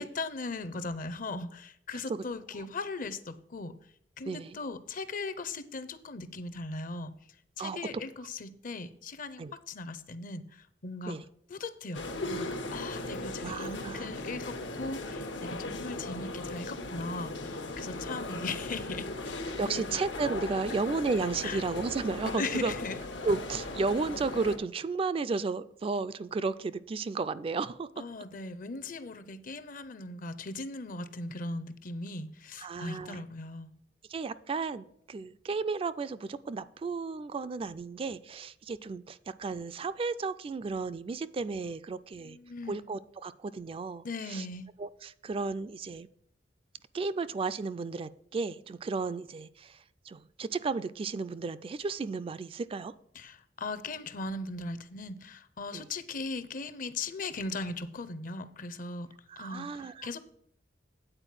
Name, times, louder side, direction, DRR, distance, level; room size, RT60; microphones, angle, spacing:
voice 1, 0.0-3.7 4.2-7.1 7.6-11.2 11.5-20.0 21.4-21.6 22.3-23.0 28.0-33.7 42.2-42.8 44.0-44.7 53.1-59.1 59.4-59.7 60.0-60.2, left 3 dB, 50° left, 13 dB, 0.6 m, -38 dB
voice 2, 4.2-4.6 7.6-7.8 9.4-9.5 11.1-11.2 13.4-14.1 19.6-22.7 23.2-27.9 32.6-33.2 34.1-42.4 42.7-44.5 44.8-46.1 46.9-52.9 55.7-55.9 59.3-60.1, right 4 dB, 30° right, 14 dB, 0.3 m, -33 dB
sound 1, 11.9-24.6, left 2 dB, 85° left, 1.2 m, -38 dB
8.9 x 4.5 x 7.4 m, 0.70 s
head